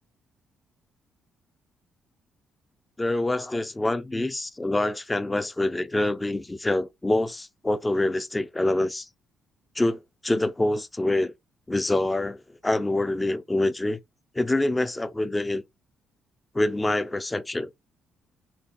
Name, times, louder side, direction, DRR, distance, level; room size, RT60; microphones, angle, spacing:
voice 1, 3.0-9.1 9.8-11.3 11.7-14.0 14.3-15.6 16.5-17.7, left 2 dB, 15° left, 0.6 m, -26 dB
4.2 x 2.8 x 4.2 m
cardioid pair, 90°, 0 cm